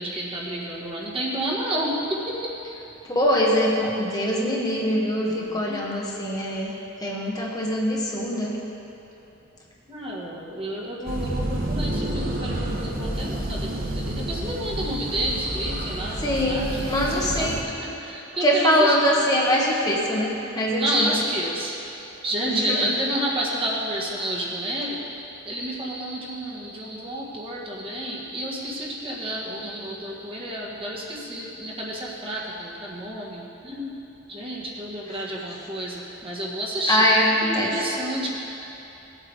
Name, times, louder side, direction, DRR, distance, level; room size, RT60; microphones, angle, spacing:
voice 1, 0.0-2.5 5.2-5.8 9.9-16.8 17.2-19.0 20.8-21.7 22.2-25.0 25.4-33.9 34.3-37.1 37.4-38.3, right 1 dB, 30° right, -4 dB, 1.7 m, -30 dB
voice 2, 3.0-8.6 16.2-17.6 18.4-21.2 22.5-23.0 35.1-35.3 36.9-37.8 38.2-38.3, equal, 20° left, -4 dB, 1.4 m, -23 dB
sound 1, 11.1-17.6, right 1 dB, 50° right, 1.1 m, -29 dB
18.0 x 8.2 x 3.6 m, 3.0 s
head